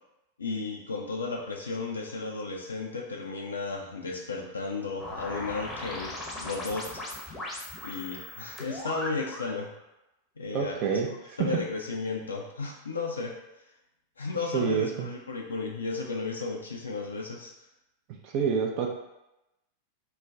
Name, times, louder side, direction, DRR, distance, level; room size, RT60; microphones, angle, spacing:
voice 1, 0.4-7.0 7.8-9.7 10.4-11.0 11.4-13.4 14.2-17.5, left 3 dB, 75° left, 0 dB, 0.3 m, -34 dB
sound 1, 5.0-9.6, left 1 dB, 15° left, 0.7 m, -38 dB
voice 2, 10.5-11.5 14.5-15.1 18.2-18.9, right 6 dB, 45° right, 2 dB, 0.4 m, -28 dB
2.4 x 2.1 x 3.6 m, 0.91 s
figure-of-eight pair, 90°, 0 cm